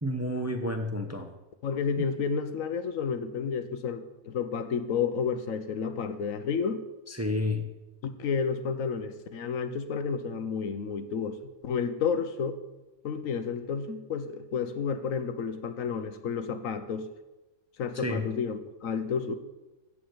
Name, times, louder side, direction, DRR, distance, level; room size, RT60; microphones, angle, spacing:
voice 1, 0.0-1.3 2.0-2.1 7.1-7.6 17.9-18.2, left 1 dB, 15° right, 4 dB, 0.6 m, -30 dB
voice 2, 1.6-6.8 8.0-11.4 11.6-12.6 13.0-17.1 17.8-19.3, left 6 dB, 75° left, 10 dB, 1.2 m, -31 dB
13.5 x 4.8 x 8.0 m, 1.0 s
omnidirectional pair, 1.4 m